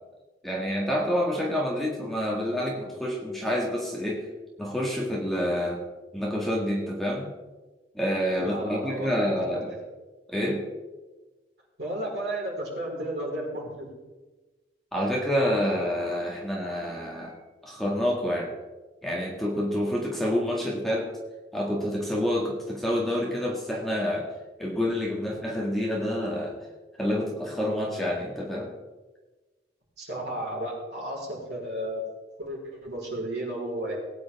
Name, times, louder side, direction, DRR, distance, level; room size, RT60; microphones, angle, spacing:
voice 1, 0.4-4.2 4.6-5.8 6.1-7.3 7.9-9.7 10.3-10.6 14.9-17.4 17.6-18.5 19.0-21.1 21.5-24.3 24.6-26.5 27.0-28.7, equal, ahead, -4 dB, 1.9 m, -28 dB
voice 2, 8.4-9.8 11.8-13.9 30.0-32.0 32.4-34.0, right 1 dB, 60° right, -3 dB, 4.9 m, -33 dB
19.5 x 9.6 x 3.7 m, 1.2 s
head